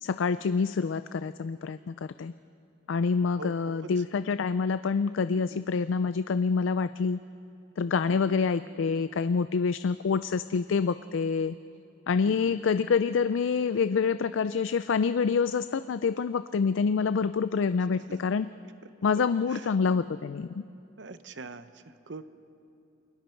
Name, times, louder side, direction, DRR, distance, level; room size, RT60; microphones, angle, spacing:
voice 1, 0.0-2.3 2.9-7.2 7.8-11.5 12.1-18.5 19.0-20.6, left 5 dB, 75° left, 13 dB, 0.4 m, -27 dB
voice 2, 3.4-4.0 5.3-5.6 8.1-8.4 12.2-12.5 17.9-18.2 19.0-19.1 19.5-19.7 21.0-22.2, right 3 dB, 65° right, 12 dB, 0.8 m, -44 dB
29.0 x 21.5 x 4.5 m, 2.6 s
head